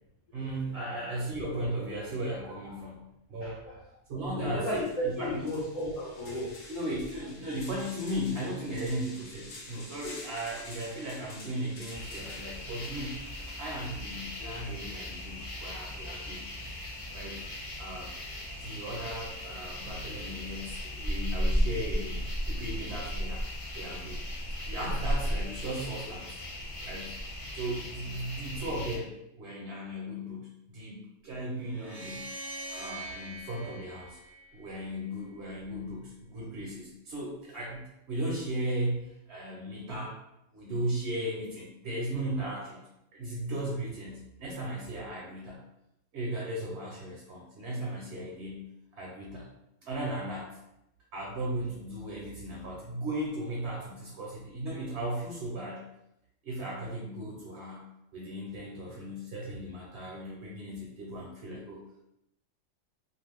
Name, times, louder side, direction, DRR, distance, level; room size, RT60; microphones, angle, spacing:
voice 1, 0.3-3.0 3.3-3.6 4.1-4.7 5.0-5.4 6.7-13.2 13.6-16.4 17.1-17.4 17.8-18.1 18.6-23.5 23.7-24.2 24.6-26.4 26.8-27.1 27.5-32.3 32.7-34.2 34.5-40.2 40.5-45.6 46.1-49.5 49.8-50.6 51.1-55.9 56.4-57.8 58.1-61.8, right 1 dB, 65° right, -3 dB, 0.9 m, -36 dB
voice 2, 3.4-3.7 4.4-6.5, equal, 35° left, -10 dB, 0.8 m, -33 dB
sound 1, 4.2-4.3 4.7-14.3, left 2 dB, 85° left, 1.1 m, -49 dB
sound 2, 11.9-29.0, equal, 55° left, 0.3 m, -35 dB
sound 3, 31.7-35.0, right 1 dB, ahead, 0.6 m, -43 dB
2.4 x 2.3 x 3.4 m, 0.84 s
omnidirectional pair, 1.3 m